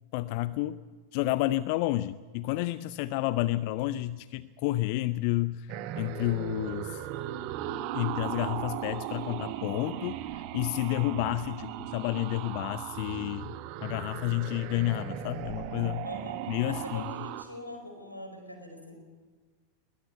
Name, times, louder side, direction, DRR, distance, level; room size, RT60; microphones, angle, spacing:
voice 1, 0.1-0.8 1.1-7.1 7.9-13.5 13.8-16.0 16.5-17.0, left 16 dB, 45° left, 16 dB, 0.5 m, -30 dB
sound 1, 5.7-17.4, right 12 dB, 45° right, 1.3 m, -37 dB
voice 2, 16.0-16.4 16.7-19.0, left 1 dB, 85° left, 5 dB, 4.7 m, -43 dB
21.5 x 18.0 x 8.3 m, 1.4 s
figure-of-eight pair, 90°, 0 cm